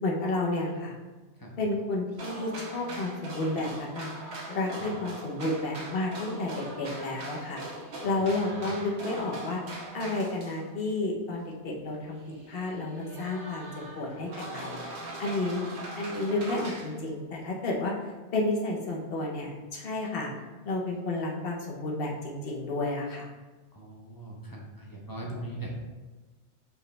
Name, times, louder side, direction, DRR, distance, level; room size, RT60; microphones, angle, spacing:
voice 1, 0.0-0.9 1.6-9.6 9.9-12.2 12.5-13.7 14.0-15.7 16.0-17.9 18.3-20.3 20.6-23.3, left 2 dB, 60° left, -1 dB, 1.0 m, -31 dB
sound 1, 2.2-10.7 11.4-11.5 12.0-17.0, right 2 dB, 70° right, 1.1 m, -41 dB
voice 2, 23.7-25.8, right 1 dB, 25° left, -2 dB, 0.6 m, -40 dB
4.8 x 3.2 x 3.2 m, 1.2 s
omnidirectional pair, 1.2 m